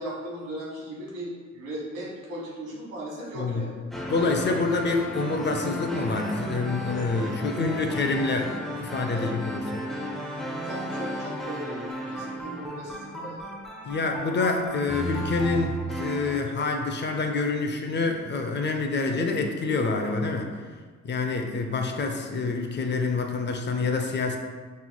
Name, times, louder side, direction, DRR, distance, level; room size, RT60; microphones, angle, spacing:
voice 1, 0.0-3.8 6.9-7.9 9.1-9.3 10.6-13.5, right 1 dB, 85° right, -5 dB, 1.5 m, -38 dB
voice 2, 3.3-3.7 4.1-9.8 13.8-20.5 21.0-24.4, left 3 dB, 35° left, 4 dB, 0.5 m, -27 dB
sound 1, 3.9-16.4, right 1 dB, ahead, 0.7 m, -34 dB
5.4 x 3.0 x 2.2 m, 1.5 s
cardioid pair, 90°, 30 cm